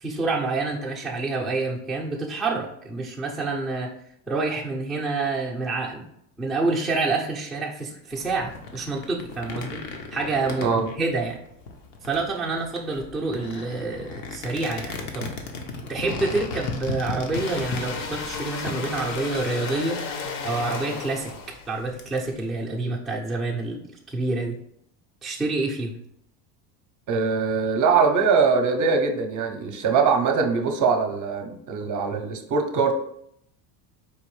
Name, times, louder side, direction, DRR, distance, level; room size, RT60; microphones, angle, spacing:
voice 1, 0.0-3.9 4.3-6.1 6.4-9.8 10.1-11.4 12.0-15.3 15.9-20.0 20.4-21.3 21.7-23.8 24.1-24.6 25.2-26.0, right 3 dB, ahead, -4 dB, 0.4 m, -27 dB
sound 1, 8.1-22.4, left 3 dB, 80° left, 0.9 m, -37 dB
sound 2, 17.3-21.9, left 5 dB, 45° left, 0.7 m, -33 dB
voice 2, 27.1-32.9, right 5 dB, 40° right, 4 dB, 0.6 m, -22 dB
4.7 x 2.6 x 3.1 m, 0.72 s
supercardioid pair, 110°, 46 cm